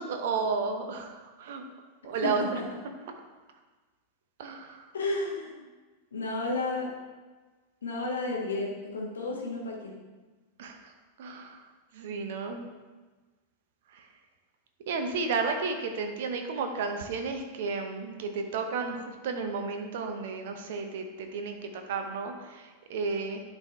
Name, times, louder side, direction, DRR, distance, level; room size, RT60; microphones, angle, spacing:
voice 1, 0.0-1.6 2.0-2.6 4.4-4.9 10.6-10.9 11.2-11.7 11.9-12.6 13.9-14.1 14.8-23.4, right 4 dB, 55° right, 5 dB, 0.9 m, -33 dB
voice 2, 2.2-2.6 4.9-5.7 6.1-6.9 7.8-9.9, left 2 dB, 70° left, -2 dB, 1.4 m, -32 dB
10.5 x 4.2 x 3.5 m, 1.3 s
figure-of-eight pair, 90°, 0 cm